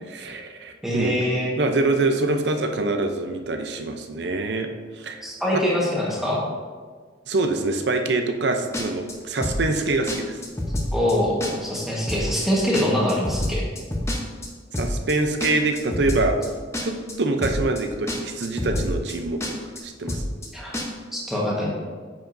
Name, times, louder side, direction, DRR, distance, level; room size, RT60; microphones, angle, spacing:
voice 1, 0.1-1.3 1.6-4.7 5.0-5.3 5.5-5.6 7.3-10.4 14.7-16.4 16.8-20.3, right 2 dB, 65° right, 5 dB, 0.6 m, -25 dB
voice 2, 0.8-1.5 5.2-6.4 10.9-13.6 20.5-20.7 21.1-21.7, left 1 dB, ahead, -5 dB, 1.3 m, -24 dB
sound 1, 8.7-9.1 9.4-9.8 10.1-10.2 10.4-11.1 11.4-11.8 12.1-12.5 12.7-14.5 14.7-15.1 15.4-16.5 16.7-17.1 17.4-17.8 18.1-18.2 18.4-19.1 19.4-19.8 20.1-20.5 20.7-20.8, left 1 dB, 15° left, 0.8 m, -27 dB
9.0 x 5.0 x 2.6 m, 1.5 s
head